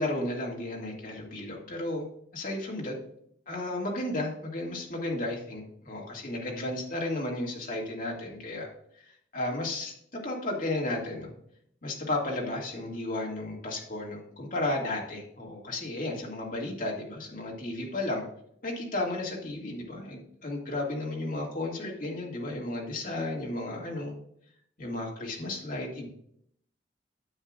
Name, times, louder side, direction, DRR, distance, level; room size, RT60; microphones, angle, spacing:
voice 1, 0.0-2.1 2.3-2.9 3.5-8.7 9.0-11.3 11.8-18.2 18.6-24.1 24.8-26.1, left 2 dB, 45° left, -2 dB, 2.0 m, -33 dB
9.8 x 7.8 x 2.4 m, 0.68 s
head